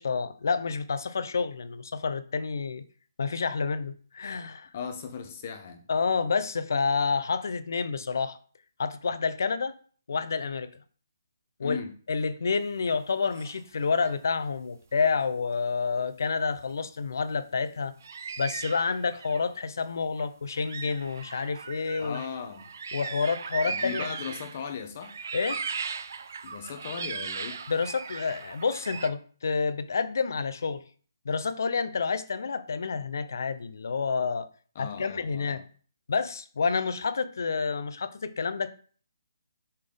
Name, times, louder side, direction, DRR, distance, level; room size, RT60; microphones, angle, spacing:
voice 1, 0.0-2.8 3.2-4.7 5.9-8.4 8.8-9.8 10.1-10.7 11.6-11.8 12.1-17.9 18.4-22.2 22.9-24.1 25.3-25.6 27.7-30.8 31.2-34.5 34.8-35.6 36.1-38.7, left 5 dB, 55° left, 0.7 m, -29 dB
voice 2, 4.7-5.8 11.6-11.9 22.0-22.7 23.6-25.2 26.4-27.6 34.7-35.6, left 6 dB, 25° left, 0.9 m, -37 dB
sound 1, 13.3-13.6 13.9-14.1 15.0-15.1 18.0-19.5 20.2-20.3 20.6-24.7 25.0-29.1, right 5 dB, 45° right, 0.5 m, -38 dB
5.6 x 4.1 x 5.1 m
hypercardioid pair, 175°, 2 cm